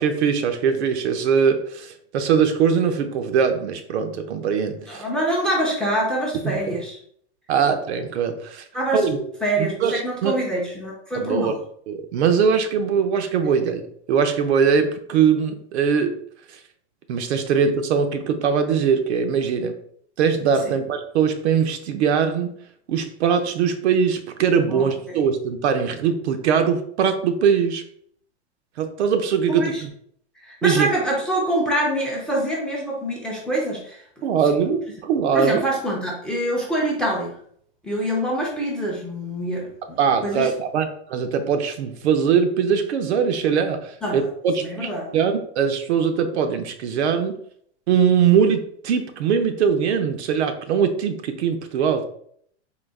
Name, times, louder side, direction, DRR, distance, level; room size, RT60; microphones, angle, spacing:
voice 1, 0.0-5.0 7.5-8.6 8.9-9.2 9.6-10.3 11.1-11.5 11.9-16.2 17.1-19.8 20.2-22.5 22.9-27.8 28.8-29.9 30.6-30.9 34.2-35.6 40.0-47.4 47.9-52.0, right 6 dB, 70° right, 7 dB, 0.7 m, -21 dB
voice 2, 4.9-7.0 8.7-9.0 9.4-11.6 20.7-20.8 24.7-25.2 29.5-29.8 30.4-34.0 34.4-34.5 35.3-37.4 37.8-40.5 44.0-44.3 44.6-45.1, right 1 dB, ahead, -3 dB, 0.5 m, -25 dB
3.9 x 2.4 x 3.5 m, 0.64 s
hypercardioid pair, 140°, 35 cm